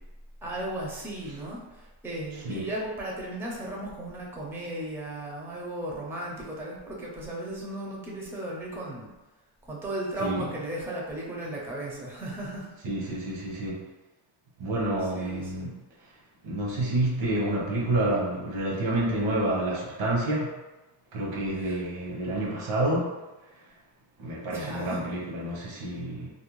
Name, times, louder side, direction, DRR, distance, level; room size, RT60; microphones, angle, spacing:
voice 1, 0.4-9.1 9.7-12.7 15.1-15.7 21.6-21.8 24.5-25.0, right 1 dB, 5° right, -3 dB, 0.4 m, -36 dB
voice 2, 12.8-13.8 14.6-15.7 16.4-20.5 21.1-23.1 24.2-26.3, right 1 dB, 85° right, -3 dB, 0.9 m, -28 dB
2.5 x 2.1 x 3.0 m, 1.1 s
wide cardioid pair, 120°, 50 cm